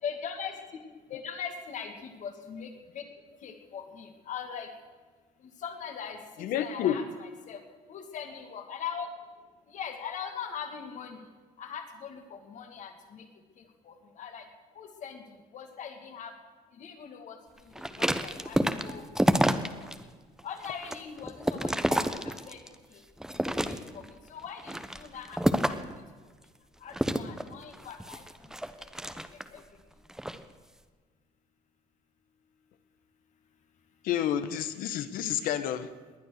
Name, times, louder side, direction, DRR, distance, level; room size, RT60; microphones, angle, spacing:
voice 1, 0.0-0.8 1.1-3.0 3.4-4.7 5.4-7.6 7.9-9.1 9.7-11.2 11.6-13.3 13.6-14.5 14.8-15.2 15.5-16.3 16.8-19.2 19.8-20.1 20.4-23.0 23.3-25.8 26.8-28.2 28.8-28.9 29.5-29.6, left 7 dB, 60° left, 5 dB, 2.3 m, -41 dB
voice 2, 6.4-7.0 34.0-35.9, left 10 dB, 75° left, 12 dB, 1.1 m, -29 dB
sound 1, 17.7-20.0 20.4-22.7 23.2-24.1 24.6-25.9 26.9-29.6 30.1-30.4, equal, 5° right, 1.0 m, -29 dB
19.5 x 9.9 x 6.5 m, 1.4 s
supercardioid pair, 85°, 15 cm